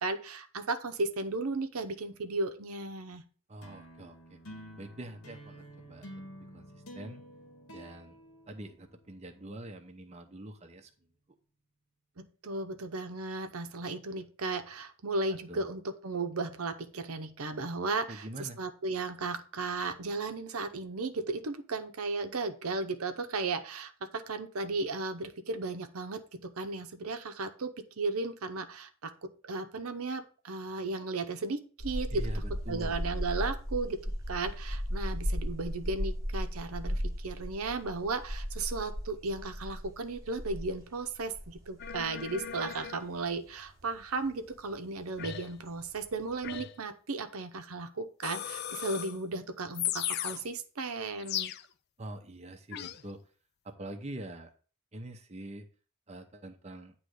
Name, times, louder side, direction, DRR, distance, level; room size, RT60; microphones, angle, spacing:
voice 1, 0.0-3.2 12.2-34.0 34.3-51.5, right 3 dB, 90° right, 8 dB, 0.8 m, -35 dB
voice 2, 3.5-4.4 4.8-7.2 7.7-8.2 8.5-10.9 15.5-15.6 18.1-18.6 32.1-33.0 52.0-53.2 53.6-54.5 54.9-55.7 56.1-56.9, right 1 dB, 30° right, 5 dB, 0.7 m, -44 dB
sound 1, 3.6-9.2, equal, 85° left, 1.6 m, -49 dB
sound 2, 31.8-46.6, equal, 15° right, 1.1 m, -37 dB
sound 3, 41.8-43.1 45.2-45.6 46.4-46.8 48.2-49.2 49.7-50.5 51.2-51.7 52.7-53.0, left 10 dB, 50° left, 0.4 m, -36 dB
9.1 x 3.1 x 6.3 m, 0.39 s
head